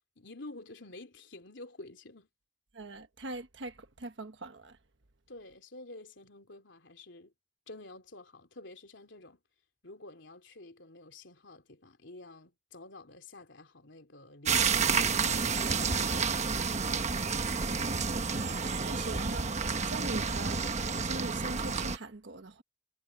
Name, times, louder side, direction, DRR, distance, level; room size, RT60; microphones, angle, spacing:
voice 1, 0.0-2.3 5.3-7.3 7.7-9.4 9.8-16.6, left 2 dB, 75° left, 3.3 m, -49 dB
voice 2, 2.7-4.8 15.0-15.1 18.8-20.6 21.0-22.6, right 2 dB, 70° right, 1.3 m, -42 dB
sound 1, 14.5-22.0, right 5 dB, 40° right, 1.2 m, -30 dB
head